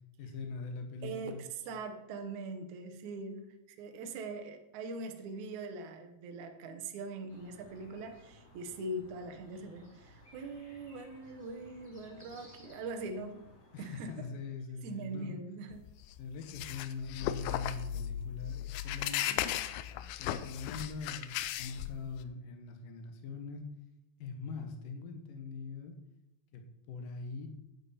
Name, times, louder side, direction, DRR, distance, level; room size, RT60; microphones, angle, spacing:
voice 1, 0.2-1.4 13.7-15.4 16.2-19.7 20.2-23.6 24.2-25.9 26.5-27.5, left 4 dB, 60° left, 5 dB, 2.6 m, -42 dB
voice 2, 1.0-13.5 13.8-14.3 14.8-15.8, right 3 dB, 85° right, 5 dB, 1.7 m, -42 dB
sound 1, 7.3-14.2, left 1 dB, 25° left, 1.6 m, -58 dB
sound 2, 15.7-22.2, left 11 dB, 80° left, 2.7 m, -36 dB
11.0 x 10.0 x 4.4 m, 0.90 s
omnidirectional pair, 5.3 m